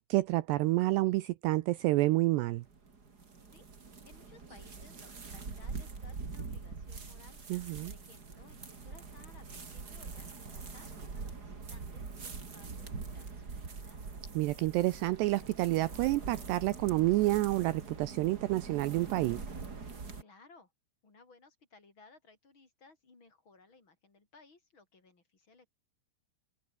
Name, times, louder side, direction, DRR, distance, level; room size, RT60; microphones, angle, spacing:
voice 1, 0.1-2.6 7.5-7.9 14.3-19.4, right 18 dB, 80° right, 2.5 m, -29 dB
sound 1, 2.5-20.2, right 4 dB, 25° right, 2.4 m, -44 dB
voice 2, 4.0-7.4 7.8-14.0 20.2-20.7 21.0-25.7, left 3 dB, 25° left, 5.0 m, -60 dB
omnidirectional pair, 5.5 m